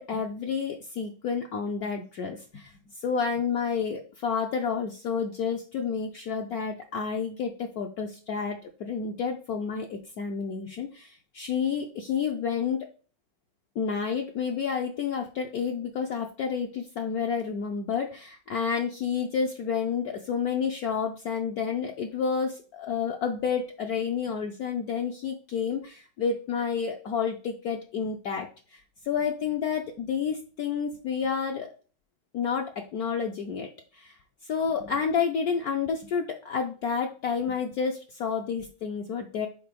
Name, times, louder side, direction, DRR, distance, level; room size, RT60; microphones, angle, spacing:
voice 1, 0.0-12.9 13.8-28.8 29.0-31.7 32.3-34.1 34.5-39.5, left 6 dB, 65° left, 2 dB, 0.9 m, -30 dB
4.6 x 4.0 x 5.1 m, 0.37 s
omnidirectional pair, 2.2 m